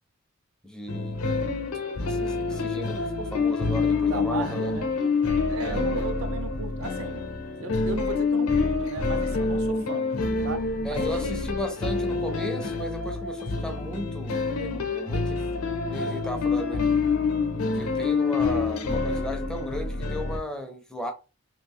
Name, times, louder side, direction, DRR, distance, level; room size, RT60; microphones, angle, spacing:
voice 1, 0.6-1.3 2.0-4.8 5.6-5.9 10.8-15.5 15.9-16.8 17.7-21.1, equal, 5° left, 0.4 m, -36 dB
sound 1, 0.9-20.4, left 4 dB, 80° left, 0.7 m, -27 dB
voice 2, 4.1-4.9 5.5-7.2 7.6-10.1 10.4-10.6 10.9-11.2, right 3 dB, 70° right, 0.4 m, -35 dB
3.0 x 2.4 x 3.6 m
head